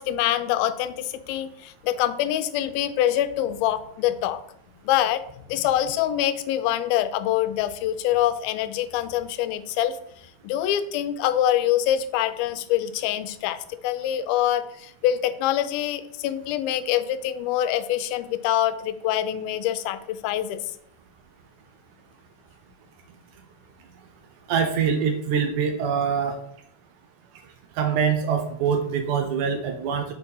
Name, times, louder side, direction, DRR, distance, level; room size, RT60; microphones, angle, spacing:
voice 1, 0.0-4.4 4.9-5.2 5.5-10.0 10.4-20.6, left 12 dB, 90° left, 11 dB, 2.4 m, -25 dB
voice 2, 24.5-26.4 27.8-30.1, right 6 dB, 80° right, 5 dB, 1.8 m, -24 dB
6.3 x 4.5 x 5.4 m, 0.71 s
omnidirectional pair, 4.2 m